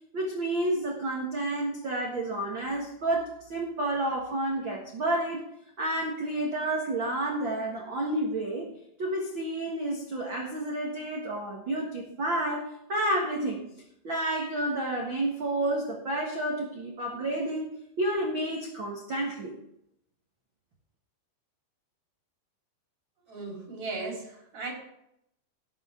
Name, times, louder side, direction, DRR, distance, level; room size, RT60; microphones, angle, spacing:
voice 1, 0.1-5.4 5.8-8.7 9.0-13.6 14.0-17.7 18.0-19.5, right 1 dB, 70° right, -1 dB, 1.1 m, -30 dB
voice 2, 23.3-24.7, right 3 dB, 40° right, -3 dB, 5.2 m, -37 dB
18.0 x 8.0 x 3.8 m, 0.78 s
omnidirectional pair, 4.9 m